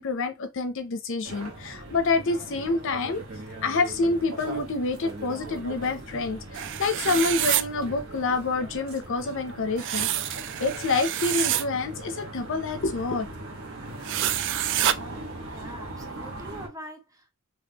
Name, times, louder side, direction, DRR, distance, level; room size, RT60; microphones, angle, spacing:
voice 1, 0.0-3.2 3.6-13.3, left 3 dB, 60° left, 0.6 m, -27 dB
sound 1, 1.2-16.7, right 2 dB, 75° right, 1.2 m, -40 dB
sound 2, 6.5-7.6 9.8-11.6 14.0-14.9, right 12 dB, 60° right, 0.3 m, -27 dB
voice 2, 15.5-17.3, right 1 dB, 15° right, 0.7 m, -43 dB
3.6 x 2.7 x 2.8 m
head